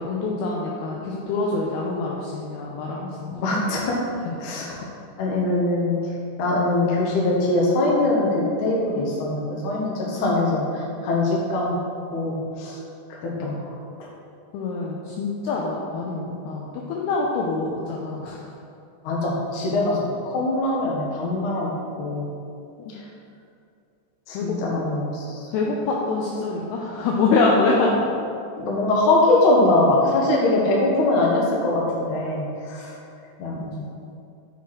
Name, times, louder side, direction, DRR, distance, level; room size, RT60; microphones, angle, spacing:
voice 1, 0.0-3.4 4.3-4.8 14.5-18.4 24.3-24.6 25.5-27.9 33.8-33.9, left 3 dB, 85° left, -2 dB, 2.3 m, -25 dB
voice 2, 3.3-3.9 4.4-4.7 5.2-6.0 6.4-8.3 8.6-10.6 11.0-11.8 12.1-12.8 13.2-13.5 19.0-20.0 20.2-21.7 22.0-22.2 24.3-25.5 28.6-32.9 33.4-33.8, left 2 dB, 70° left, -4 dB, 1.8 m, -22 dB
7.0 x 6.0 x 4.8 m, 2.5 s
omnidirectional pair, 5.5 m